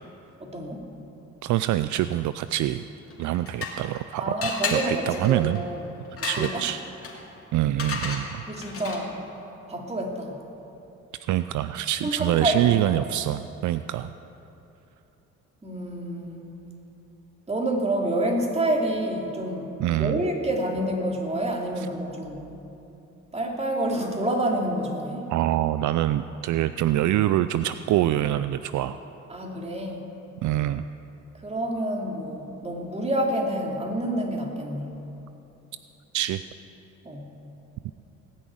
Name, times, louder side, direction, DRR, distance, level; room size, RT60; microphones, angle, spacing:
voice 1, 0.4-0.8 4.2-5.8 6.2-6.6 8.1-8.2 8.5-9.1 9.7-10.3 12.0-12.7 15.6-16.5 17.5-22.5 23.3-25.3 29.3-30.0 31.4-35.0 37.0-37.3, right 1 dB, 20° right, 0 dB, 2.6 m, -28 dB
voice 2, 1.4-2.8 3.2-4.4 4.7-5.6 6.2-6.8 7.5-8.4 11.3-14.1 19.8-20.2 21.8-21.9 25.3-29.0 30.4-30.8 36.1-36.4 37.8-37.9, right 13 dB, 75° right, 12 dB, 0.5 m, -25 dB
sound 1, 3.1-4.0 4.4-9.2, left 3 dB, 50° left, 2.4 m, -34 dB
18.5 x 6.4 x 9.4 m, 3.0 s
cardioid pair, 90°, 30 cm